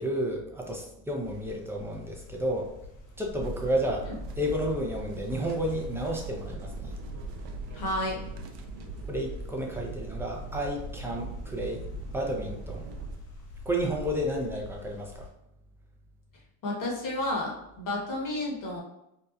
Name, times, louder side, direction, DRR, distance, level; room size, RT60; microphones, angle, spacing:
voice 1, 0.0-2.7 3.2-4.1 4.4-6.7 9.1-11.8 12.1-12.9 13.7-15.3, equal, 5° right, 0 dB, 0.4 m, -31 dB
sound 1, 1.2-15.3, left 1 dB, 80° left, 1.1 m, -45 dB
sound 2, 3.4-13.2, right 3 dB, 65° right, 0.6 m, -40 dB
voice 2, 7.7-8.2 16.6-18.8, left 1 dB, 45° left, -2 dB, 1.0 m, -31 dB
2.8 x 2.1 x 2.3 m, 0.83 s
supercardioid pair, 90°, 46 cm